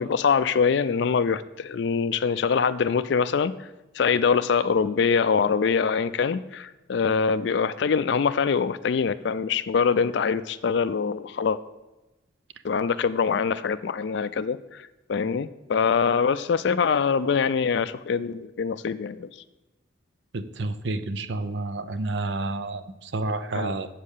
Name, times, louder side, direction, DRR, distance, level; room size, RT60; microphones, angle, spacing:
voice 1, 0.0-3.6 3.9-11.6 12.6-14.8 15.1-19.3 23.5-23.8, left 6 dB, 60° left, 13 dB, 0.4 m, -24 dB
voice 2, 20.3-23.9, right 2 dB, 65° right, 12 dB, 0.6 m, -30 dB
7.5 x 7.3 x 6.6 m, 1.0 s
head